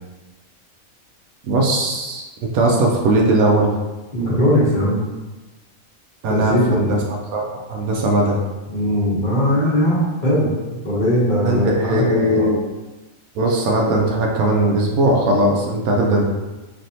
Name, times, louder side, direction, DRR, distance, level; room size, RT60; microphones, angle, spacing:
voice 1, 1.5-3.7 6.2-7.0 7.3-8.4 11.4-12.6 13.3-16.2, right 1 dB, 85° right, -1 dB, 1.0 m, -19 dB
voice 2, 4.1-5.0 6.3-7.0 8.7-10.5 10.8-12.5, equal, 40° left, -8 dB, 1.0 m, -19 dB
3.3 x 2.6 x 2.7 m, 1.2 s
omnidirectional pair, 1.5 m